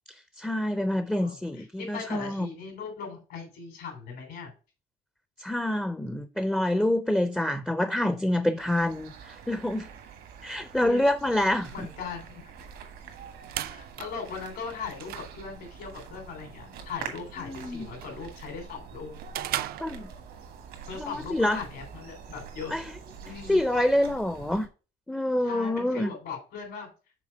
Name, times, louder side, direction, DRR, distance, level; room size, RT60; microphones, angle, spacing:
voice 1, 0.4-2.5 5.4-9.9 10.4-11.9 17.4-17.9 19.8-20.1 21.0-21.6 22.7-22.9 23.5-24.7 25.1-26.1, left 1 dB, 5° left, 0.4 m, -27 dB
voice 2, 1.2-4.5 10.8-11.0 11.7-12.5 13.6-19.1 20.8-22.8 23.2-23.6 25.1-26.9, left 5 dB, 80° left, 3.0 m, -39 dB
sound 1, 8.6-24.7, right 6 dB, 85° right, 1.4 m, -45 dB
sound 2, 13.1-20.6, right 13 dB, 65° right, 0.4 m, -40 dB
6.0 x 3.7 x 4.3 m
cardioid pair, 110°, 17 cm